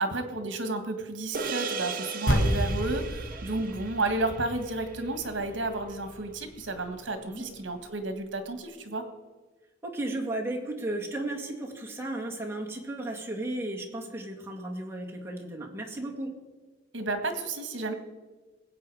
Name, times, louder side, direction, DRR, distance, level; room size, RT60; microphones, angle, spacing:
voice 1, 0.0-9.0 16.9-17.9, right 2 dB, 70° right, 8 dB, 1.6 m, -32 dB
sound 1, 1.3-5.9, right 4 dB, 50° right, 0.9 m, -38 dB
sound 2, 2.3-6.8, equal, 75° left, 2.7 m, -31 dB
voice 2, 3.3-3.6 7.2-7.4 9.8-16.3, right 1 dB, 15° right, -2 dB, 2.1 m, -34 dB
20.5 x 8.4 x 4.9 m, 1.3 s
head